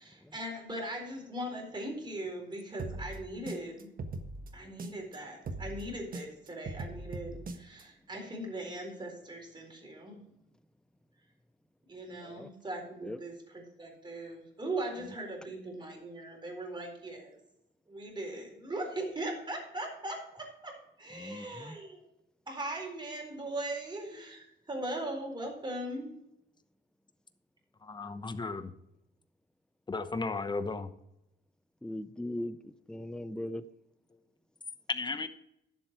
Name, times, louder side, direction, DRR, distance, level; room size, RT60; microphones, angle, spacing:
voice 1, 0.0-3.9 4.5-10.2 11.9-17.4 17.9-22.0 22.5-26.1, right 1 dB, 25° right, 1 dB, 4.2 m, -39 dB
sound 1, 2.8-5.2 5.5-7.8, right 2 dB, 45° right, 1.4 m, -40 dB
voice 2, 21.2-21.8 31.8-33.6, left 1 dB, 5° left, 14 dB, 0.6 m, -39 dB
voice 3, 27.8-28.7 29.9-30.9 34.9-35.3, left 3 dB, 20° left, 11 dB, 1.0 m, -34 dB
11.5 x 7.6 x 4.6 m, 0.82 s
cardioid pair, 90°, 20 cm